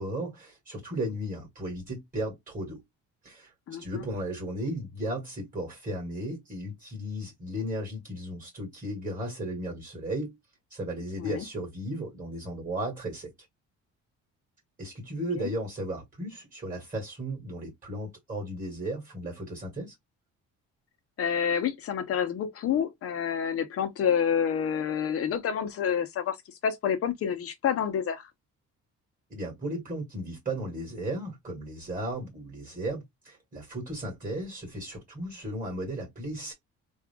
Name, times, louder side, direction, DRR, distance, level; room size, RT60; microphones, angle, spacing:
voice 1, 0.0-2.8 3.2-10.4 10.7-13.3 14.8-19.9 29.3-36.5, right 1 dB, 25° right, 2.3 m, -35 dB
voice 2, 3.7-4.0 11.2-11.4 15.3-15.5 21.2-26.4 26.6-28.3, left 8 dB, 50° left, 0.9 m, -28 dB
3.5 x 2.6 x 3.6 m
cardioid pair, 150°, 29 cm